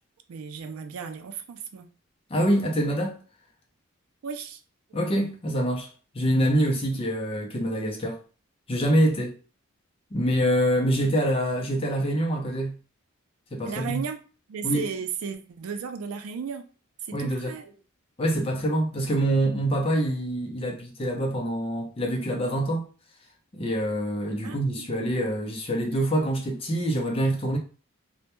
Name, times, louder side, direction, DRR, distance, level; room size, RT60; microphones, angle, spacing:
voice 1, 0.3-1.9 4.2-4.6 13.6-14.2 14.5-16.6 17.0-17.8 24.4-24.9, right 6 dB, 80° right, 0.4 m, -34 dB
voice 2, 2.3-3.2 4.9-5.9 6.1-8.2 8.7-9.4 10.1-12.8 13.5-14.0 14.6-14.9 17.1-17.6 18.2-22.9 23.5-27.6, right 1 dB, 25° left, 0.4 m, -25 dB
2.1 x 2.1 x 2.9 m
head